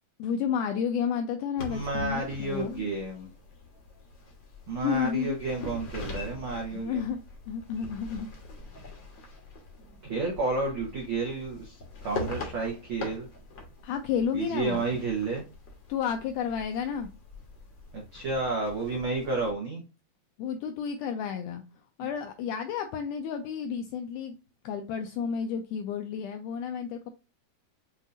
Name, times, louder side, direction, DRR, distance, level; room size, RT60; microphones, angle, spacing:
voice 1, 0.2-2.9 4.8-5.4 6.7-7.2 7.5-8.3 13.8-14.9 15.9-17.1 20.4-21.6 22.0-24.4 24.6-27.1, left 7 dB, 85° left, 1.8 m, -31 dB
sound 1, 1.6-19.5, left 2 dB, 70° left, 1.0 m, -43 dB
voice 2, 1.7-3.3 4.7-7.0 10.0-13.3 14.3-15.4 17.9-19.8, right 3 dB, 85° right, 1.1 m, -31 dB
7.2 x 2.7 x 2.5 m
omnidirectional pair, 4.1 m